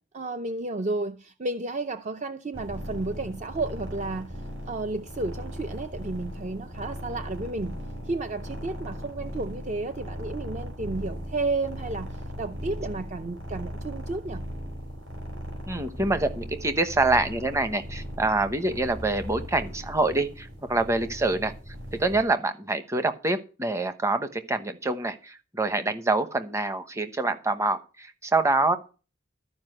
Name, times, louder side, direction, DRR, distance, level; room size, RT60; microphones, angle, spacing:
voice 1, 0.1-7.8 8.0-14.5, right 2 dB, 35° right, 0.6 m, -32 dB
sound 1, 2.5-22.2, equal, 60° right, 4.7 m, -38 dB
voice 2, 15.7-21.5 21.9-28.8, right 2 dB, 15° right, 0.9 m, -26 dB
13.0 x 5.1 x 7.8 m
head